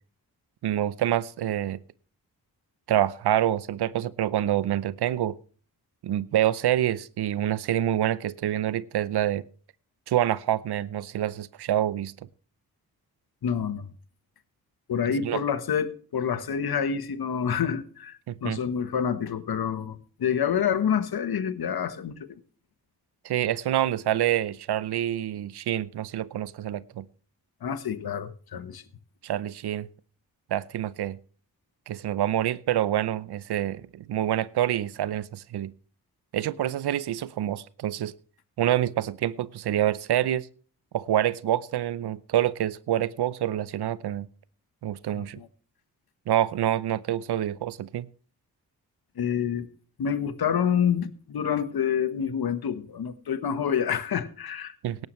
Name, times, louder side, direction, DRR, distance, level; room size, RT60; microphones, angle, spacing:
voice 1, 0.6-1.8 2.9-5.4 6.0-9.4 10.1-12.1 15.2-15.4 18.3-18.6 23.2-27.1 29.2-29.9 30.5-31.2 31.9-35.7 36.3-38.1 38.6-40.5 40.9-44.3 44.8-45.4 46.3-48.1 54.8-55.1, right 12 dB, 80° right, 19 dB, 0.7 m, -27 dB
voice 2, 13.4-13.9 14.9-22.4 27.6-28.8 45.1-45.5 49.2-49.7 50.0-54.7, left 8 dB, 70° left, 12 dB, 1.3 m, -28 dB
17.5 x 10.5 x 3.2 m, 0.42 s
cardioid pair, 50°, 39 cm